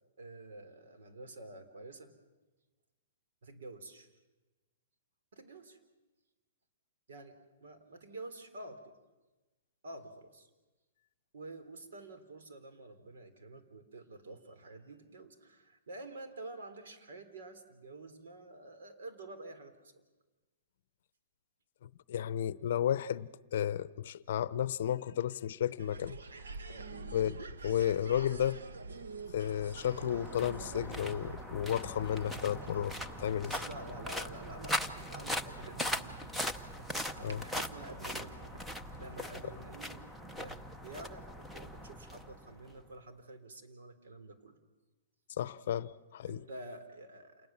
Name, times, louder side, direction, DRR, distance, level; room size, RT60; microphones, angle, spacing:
voice 1, 0.2-2.1 3.4-4.1 5.3-5.8 7.1-9.0 9.8-10.5 11.3-20.0 26.7-27.0 33.4-36.2 37.1-44.6 46.3-47.5, right 2 dB, 70° right, 3.5 m, -49 dB
voice 2, 21.8-26.2 27.1-28.6 29.3-33.5 37.2-37.4 45.4-46.5, left 10 dB, 55° left, 0.7 m, -33 dB
sound 1, 25.8-39.5, right 3 dB, 90° right, 1.5 m, -48 dB
sound 2, 29.4-42.8, equal, ahead, 0.7 m, -40 dB
28.0 x 20.0 x 7.3 m
hypercardioid pair, 165°, 0 cm